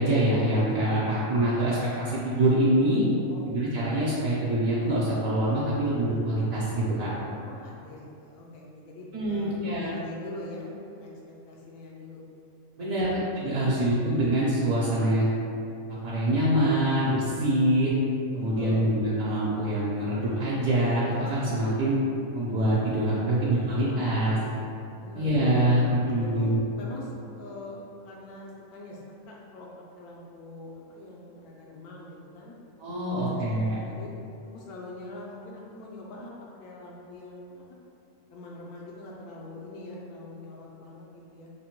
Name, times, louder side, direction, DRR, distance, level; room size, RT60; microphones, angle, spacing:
voice 1, 0.0-3.0 3.5-7.1 9.1-9.9 12.8-15.3 15.9-17.9 18.3-21.9 22.3-24.4 25.2-26.6 32.8-33.8, right 1 dB, 70° right, -8 dB, 1.0 m, -25 dB
voice 2, 3.3-3.7 7.2-12.2 12.8-13.2 13.5-14.0 18.5-19.0 23.1-24.6 25.0-25.5 26.3-29.0 29.3-29.7 29.9-32.5 33.2-34.1 34.5-36.3 36.6-37.8 38.3-41.5, left 2 dB, 90° left, -3 dB, 1.1 m, -43 dB
5.1 x 2.1 x 2.9 m, 2.7 s
omnidirectional pair, 1.6 m